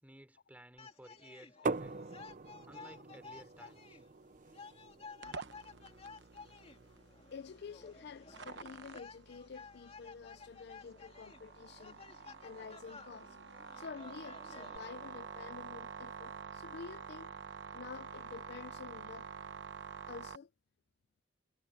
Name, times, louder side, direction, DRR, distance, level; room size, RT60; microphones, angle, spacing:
voice 1, 0.0-2.0 2.7-4.0, right 1 dB, 10° right, 4.4 m, -56 dB
sound 1, 0.8-14.8, left 4 dB, 35° left, 2.4 m, -54 dB
sound 2, 1.7-7.3, right 3 dB, 45° right, 0.7 m, -43 dB
sound 3, 5.2-20.4, right 5 dB, 75° right, 1.0 m, -49 dB
voice 2, 7.3-12.0 12.4-13.4 13.8-17.4 17.7-19.3 20.1-20.5, left 5 dB, 60° left, 0.4 m, -49 dB
head